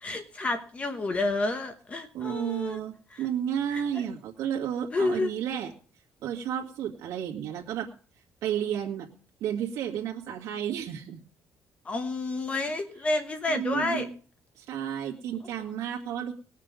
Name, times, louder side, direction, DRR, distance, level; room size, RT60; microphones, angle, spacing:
voice 1, 0.0-2.8 3.1-3.2 3.7-4.0 4.9-5.3 11.8-14.1, left 2 dB, 25° left, 8 dB, 1.1 m, -30 dB
voice 2, 2.1-5.7 6.2-7.9 8.4-9.1 9.4-11.2 13.5-14.1 14.6-16.3, right 9 dB, 80° right, -1 dB, 1.9 m, -32 dB
20.0 x 6.7 x 5.1 m, 0.41 s
cardioid pair, 160°, 5 cm